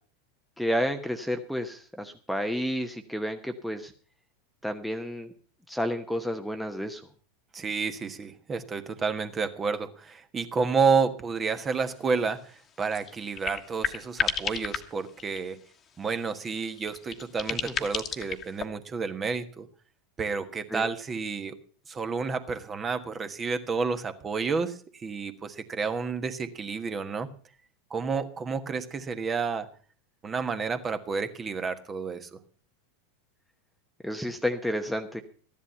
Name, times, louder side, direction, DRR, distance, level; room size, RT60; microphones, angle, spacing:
voice 1, 0.6-3.9 4.6-5.3 5.7-7.0 20.7-20.8 34.0-35.2, equal, ahead, 7 dB, 1.0 m, -30 dB
voice 2, 7.5-15.6 16.0-19.7 20.2-21.6 21.9-27.3 27.9-29.7 30.2-32.4, right 5 dB, 25° right, 9 dB, 1.3 m, -30 dB
sound 1, 11.5-11.6 11.9-12.0 12.2-12.4 12.7-15.7 16.2-18.6, left 8 dB, 30° left, 1.4 m, -33 dB
14.5 x 11.0 x 5.5 m, 0.43 s
figure-of-eight pair, 85°, 0 cm